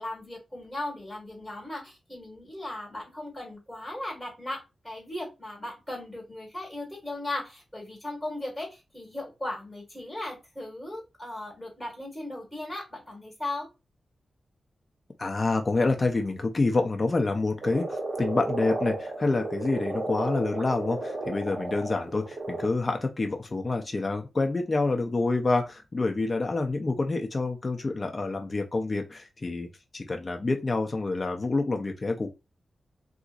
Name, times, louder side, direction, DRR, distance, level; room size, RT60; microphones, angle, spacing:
voice 1, 0.0-4.6 4.8-13.7, left 1 dB, 5° left, -3 dB, 1.7 m, -37 dB
voice 2, 15.2-29.7 29.9-32.3, left 3 dB, 35° left, 4 dB, 0.5 m, -27 dB
Frog, 17.6-22.7, right 2 dB, 55° right, 0.9 m, -33 dB
3.8 x 2.5 x 2.4 m, 0.26 s
wide cardioid pair, 100°, 0 cm